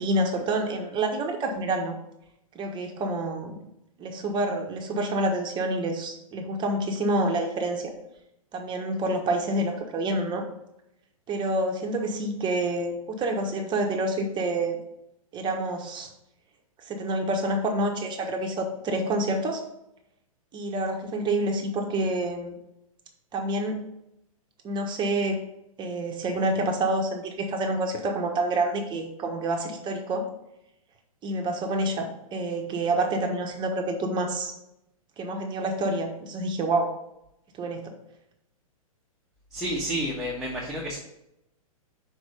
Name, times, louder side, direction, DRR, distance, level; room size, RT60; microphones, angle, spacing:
voice 1, 0.0-2.0 2.5-3.6 4.0-7.9 8.5-10.4 11.3-14.8 15.3-16.1 16.8-19.6 20.5-22.5 23.3-23.8 24.6-25.4 25.8-30.3 31.2-34.5 35.2-36.9 37.6-37.9, right 1 dB, 25° right, 3 dB, 1.3 m, -28 dB
voice 2, 39.5-41.0, equal, ahead, -6 dB, 1.4 m, -30 dB
6.2 x 4.6 x 5.3 m, 0.84 s
hypercardioid pair, 115°, 19 cm